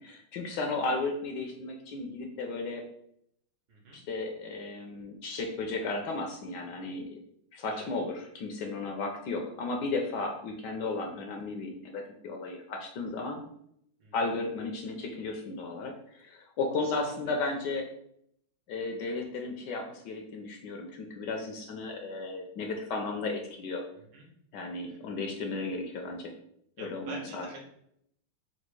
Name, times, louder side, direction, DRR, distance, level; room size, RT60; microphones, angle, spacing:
voice 1, 0.0-2.8 3.9-7.2 7.5-13.4 14.1-17.9 18.7-23.8 24.5-26.3 26.8-27.5, left 3 dB, 70° left, 2 dB, 1.1 m, -34 dB
voice 2, 3.7-4.0 7.7-7.9 14.0-14.1 16.8-16.9 23.9-24.3 24.9-25.0 26.8-27.6, right 2 dB, 65° right, -1 dB, 1.5 m, -46 dB
4.0 x 2.4 x 4.6 m, 0.72 s
omnidirectional pair, 2.2 m